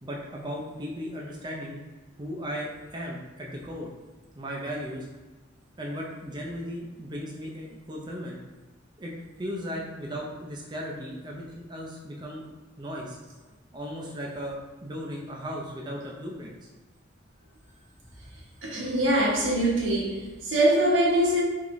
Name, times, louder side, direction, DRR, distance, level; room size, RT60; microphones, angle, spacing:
voice 1, 0.0-1.8 2.2-3.9 4.4-5.1 5.8-8.4 9.0-9.1 9.4-12.5 12.8-13.2 13.7-16.7, equal, 25° right, 0.5 m, -36 dB
voice 2, 18.6-21.4, right 1 dB, 85° right, 1.2 m, -23 dB
4.0 x 3.5 x 3.1 m
head